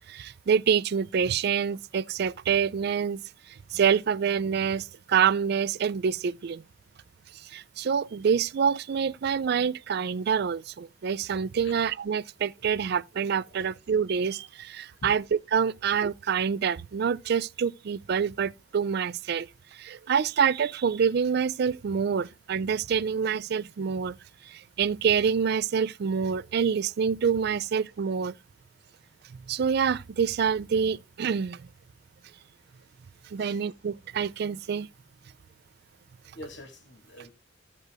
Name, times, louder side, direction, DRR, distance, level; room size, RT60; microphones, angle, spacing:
voice 1, 0.1-3.2 3.7-6.6 7.4-15.2 15.5-24.2 24.5-28.3 29.5-31.7 33.3-34.9, right 7 dB, 50° right, 0.3 m, -26 dB
voice 2, 36.3-37.3, left 1 dB, 60° left, 2.4 m, -44 dB
15.5 x 5.3 x 2.4 m
head